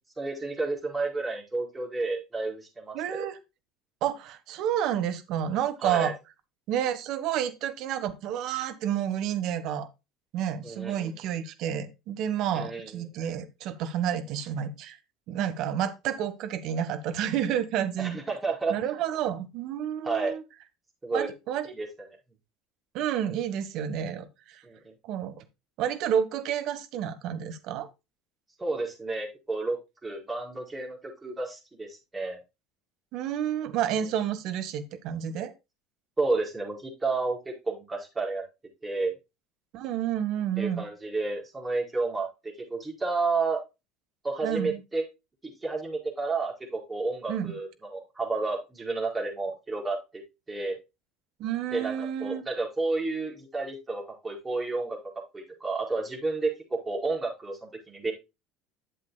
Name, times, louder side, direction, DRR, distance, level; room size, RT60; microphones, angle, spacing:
voice 1, 0.2-3.3 5.8-6.1 10.6-11.2 12.5-13.1 18.0-18.7 20.0-20.3 21.0-21.3 21.6-21.9 24.6-24.9 28.6-32.4 34.0-34.1 36.2-38.4 38.8-39.1 40.6-43.6 44.2-45.0 45.4-50.2 50.5-50.8 51.7-55.0 55.3-58.1, right 3 dB, 20° right, -1 dB, 4.6 m, -31 dB
voice 2, 2.9-3.4 4.0-6.1 6.7-9.9 10.3-15.0 15.3-18.2 18.7-20.4 21.1-21.7 22.9-24.6 25.0-25.4 25.8-27.9 33.1-35.5 39.7-40.8 44.4-44.8 47.3-47.5 51.4-52.4, right 9 dB, 55° right, 10 dB, 1.2 m, -30 dB
11.5 x 7.5 x 2.2 m, 0.25 s
hypercardioid pair, 70°, 0 cm